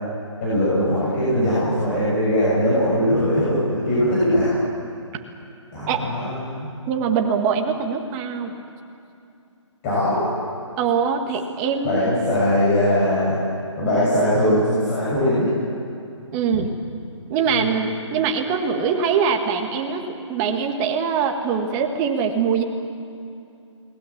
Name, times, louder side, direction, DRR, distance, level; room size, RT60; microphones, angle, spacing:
voice 1, 0.4-4.6 5.7-6.7 9.8-10.4 11.8-13.4 13.8-15.5 17.5-17.7, equal, 25° left, -8 dB, 6.7 m, -20 dB
voice 2, 6.9-8.5 10.8-12.1 16.3-16.7 17.3-20.0 20.3-22.6, right 6 dB, 20° right, 4 dB, 1.7 m, -23 dB
29.5 x 20.0 x 7.4 m, 2.6 s
hypercardioid pair, 155°, 16 cm